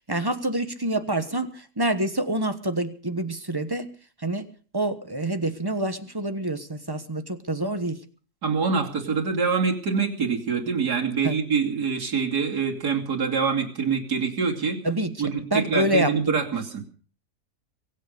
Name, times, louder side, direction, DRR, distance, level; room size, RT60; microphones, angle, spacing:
voice 1, 0.1-3.9 4.2-4.5 4.7-8.0 11.2-11.3 14.8-16.1, right 1 dB, 15° right, 9 dB, 1.0 m, -27 dB
voice 2, 8.4-14.8 15.2-16.8, right 5 dB, 75° right, 0 dB, 3.3 m, -25 dB
23.5 x 8.2 x 6.7 m, 0.42 s
omnidirectional pair, 1.7 m